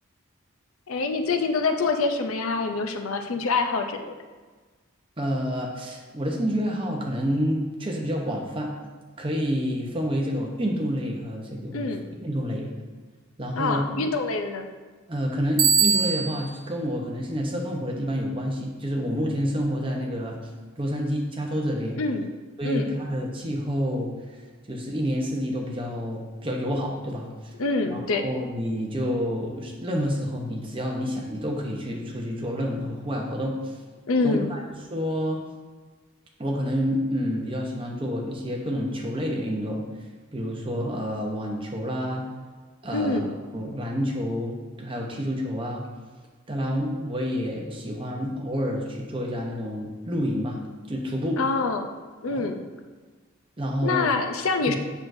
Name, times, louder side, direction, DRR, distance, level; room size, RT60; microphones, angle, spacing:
voice 1, 0.9-4.1 11.7-12.0 13.6-14.7 22.0-22.3 22.6-23.0 27.6-28.3 34.1-34.6 42.9-43.3 51.4-51.9 52.2-52.6 53.8-54.8, left 3 dB, 85° left, 6 dB, 0.6 m, -25 dB
voice 2, 5.2-8.7 9.2-11.9 12.2-12.8 13.4-13.8 15.1-20.4 20.8-22.0 22.6-24.1 24.7-27.3 27.9-33.7 34.2-34.6 34.9-35.4 36.4-39.9 40.3-42.3 42.8-43.2 43.5-45.9 46.5-50.6 50.9-51.4 52.3-52.5 53.6-54.1 54.7-54.8, equal, 25° right, -1 dB, 0.9 m, -28 dB
Bicycle bell, 15.6-16.5, right 6 dB, 80° right, 1.4 m, -21 dB
6.8 x 6.2 x 2.7 m, 1.4 s
head